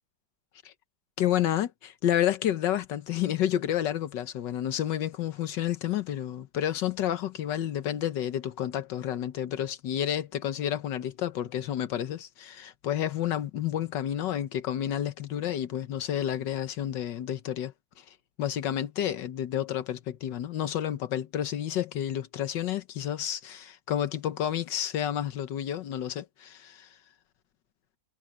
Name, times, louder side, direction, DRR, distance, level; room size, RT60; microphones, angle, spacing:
voice 1, 1.2-17.7 18.4-26.9, left 11 dB, 85° left, 1.7 m, -30 dB
omnidirectional pair, 1.9 m